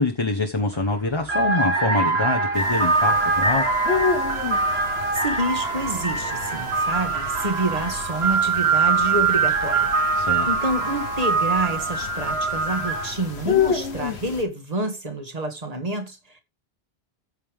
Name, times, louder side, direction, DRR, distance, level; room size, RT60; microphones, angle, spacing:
voice 1, 0.0-3.6 10.2-10.5, left 3 dB, 25° left, 1.1 m, -25 dB
sound 1, 0.6-0.8 1.2-13.3, right 4 dB, 75° right, 1.9 m, -23 dB
sound 2, 2.5-14.4, left 6 dB, 85° left, 1.4 m, -31 dB
voice 2, 5.1-9.9 10.5-16.4, right 1 dB, 35° right, 2.0 m, -28 dB
14.5 x 5.6 x 3.6 m
omnidirectional pair, 1.1 m